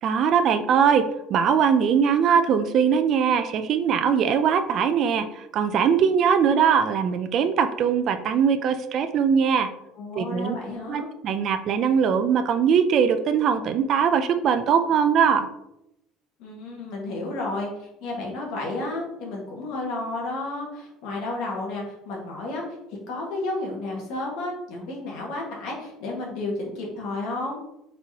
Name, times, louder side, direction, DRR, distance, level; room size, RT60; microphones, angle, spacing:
voice 1, 0.0-9.7 10.2-10.5 10.9-15.5, right 7 dB, 45° right, 9 dB, 0.3 m, -21 dB
voice 2, 9.9-11.1 16.4-22.6 23.1-27.6, left 2 dB, 70° left, -2 dB, 1.7 m, -32 dB
4.4 x 4.0 x 2.9 m, 0.83 s
cardioid pair, 150°, 0 cm